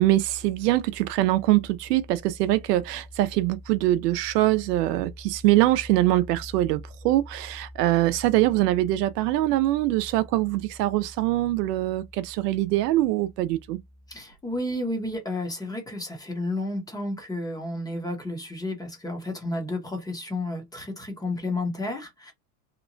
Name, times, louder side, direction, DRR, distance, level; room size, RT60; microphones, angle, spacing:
voice 1, 0.0-13.8, right 15 dB, 90° right, 0.5 m, -23 dB
voice 2, 14.1-22.3, left 2 dB, 10° left, 0.6 m, -31 dB
2.9 x 2.1 x 2.5 m
supercardioid pair, 130°, 46 cm